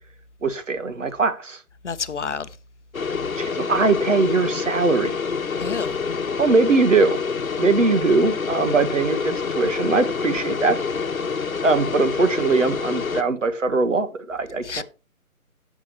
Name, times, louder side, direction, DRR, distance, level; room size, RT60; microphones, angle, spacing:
voice 1, 0.4-1.6 3.3-5.1 6.4-7.2 7.6-10.8 11.6-14.8, right 3 dB, 60° right, 1.5 m, -21 dB
voice 2, 1.8-2.5 5.6-5.9 14.7-14.8, left 5 dB, 55° left, 0.8 m, -28 dB
sound 1, 2.9-13.2, left 5 dB, 70° left, 1.1 m, -27 dB
15.0 x 6.2 x 3.1 m
figure-of-eight pair, 150°, 43 cm